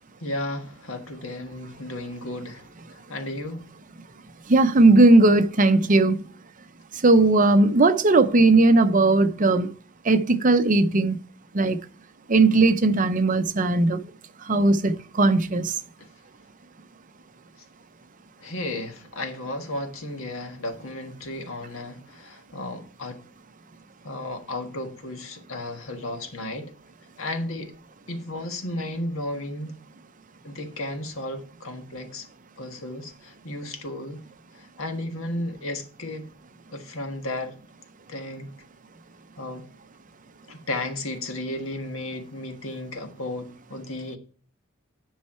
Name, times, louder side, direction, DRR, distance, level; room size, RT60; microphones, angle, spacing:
voice 1, 0.2-3.7 16.0-16.1 18.4-23.2 24.0-26.7 27.2-27.7 28.1-29.8 30.4-32.3 32.6-34.2 34.6-36.3 36.7-37.6 38.1-38.5 39.4-39.6 40.5-44.2, left 1 dB, 90° left, 1.5 m, -34 dB
voice 2, 4.5-6.2 7.0-9.7 10.1-11.2 11.5-11.8 12.3-14.0 14.5-15.7, right 2 dB, 40° right, 0.7 m, -18 dB
10.5 x 5.6 x 4.3 m
head